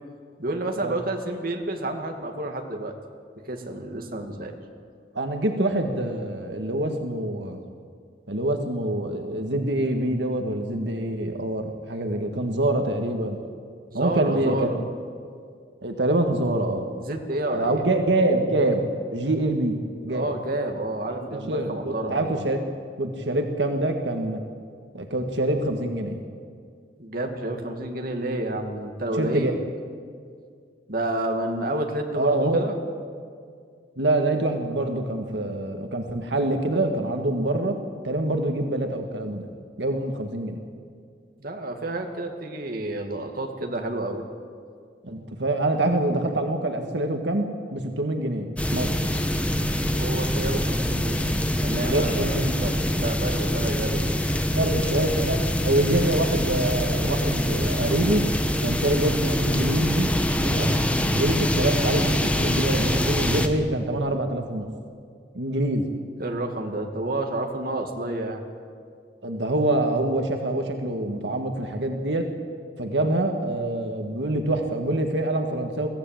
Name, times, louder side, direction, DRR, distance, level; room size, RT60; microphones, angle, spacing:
voice 1, 0.4-3.0 3.5-4.5 13.9-14.8 17.0-17.8 20.1-22.3 27.0-29.6 30.9-32.8 41.4-44.2 49.8-54.2 66.2-68.4, right 1 dB, 55° right, 3 dB, 2.2 m, -30 dB
voice 2, 5.2-7.6 8.3-13.4 13.9-14.8 15.8-16.9 17.5-20.3 21.1-22.6 23.0-24.4 24.9-26.2 29.2-29.6 32.2-32.6 34.0-37.8 38.0-39.5 39.8-40.6 45.0-49.1 51.9-52.7 54.5-58.2 58.6-60.1 60.4-60.8 61.1-64.7 65.3-65.9 69.2-72.3 72.8-75.9, right 1 dB, 85° right, 4 dB, 1.8 m, -25 dB
sound 1, 48.6-63.5, equal, 10° left, 1.3 m, -24 dB
23.0 x 15.5 x 9.1 m, 2.1 s
head